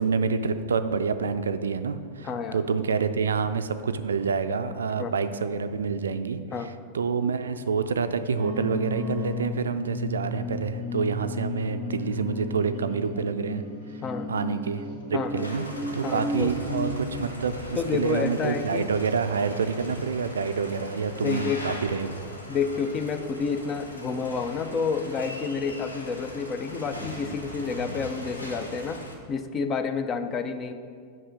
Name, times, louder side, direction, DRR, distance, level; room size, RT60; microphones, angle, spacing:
voice 1, 0.0-6.4 6.9-13.6 14.3-15.7 15.9-22.3, right 5 dB, 70° right, 10 dB, 0.3 m, -27 dB
voice 2, 2.2-2.6 5.0-5.1 6.5-6.7 13.2-13.3 14.0-14.3 15.1-15.5 16.0-16.5 17.8-18.9 21.2-21.7 22.5-29.0 29.3-30.7, left 5 dB, 30° left, 9 dB, 0.5 m, -29 dB
sound 1, 8.3-17.2, left 2 dB, 60° left, 1.4 m, -34 dB
sound 2, 15.4-29.1, left 1 dB, 80° left, 0.9 m, -40 dB
5.6 x 5.3 x 6.3 m, 2.2 s
figure-of-eight pair, 90°, 0 cm